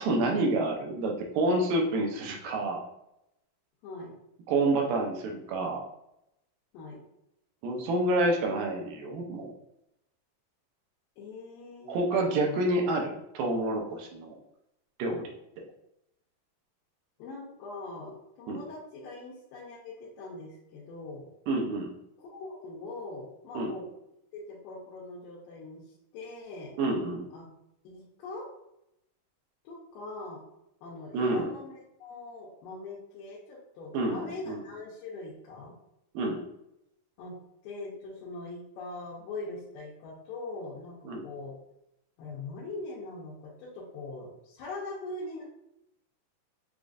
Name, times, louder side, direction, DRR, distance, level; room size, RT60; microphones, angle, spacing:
voice 1, 0.0-2.8 4.5-5.8 7.6-9.5 11.9-14.4 15.0-15.3 18.5-18.6 21.5-21.9 23.6-23.7 26.8-27.2 31.1-31.5 33.9-34.6 36.1-36.4 41.1-41.2, right 2 dB, 85° right, 1 dB, 2.2 m, -28 dB
voice 2, 3.8-4.2 6.7-7.0 11.2-12.0 17.2-21.3 22.2-23.9 24.3-26.8 27.3-27.5 27.8-28.4 29.6-30.4 30.8-35.7 37.2-37.3 37.6-41.5 42.2-45.4, left 2 dB, 85° left, -5 dB, 2.5 m, -42 dB
6.8 x 2.5 x 2.4 m, 0.82 s
omnidirectional pair, 4.0 m